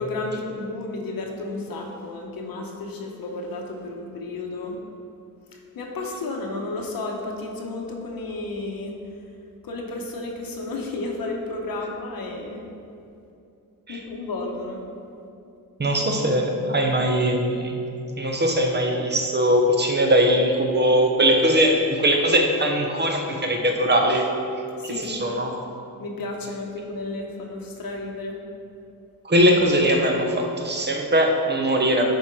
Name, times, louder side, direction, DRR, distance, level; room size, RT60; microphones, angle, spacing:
voice 1, 0.0-4.8 5.5-8.9 9.6-12.6 13.9-14.8 24.8-25.3 26.0-28.4, left 2 dB, 80° left, 0 dB, 1.2 m, -32 dB
voice 2, 15.8-17.9 18.2-24.3 24.8-25.5 29.2-32.0, equal, 30° right, 2 dB, 0.9 m, -21 dB
10.5 x 4.4 x 4.7 m, 2.7 s
wide cardioid pair, 130°, 34 cm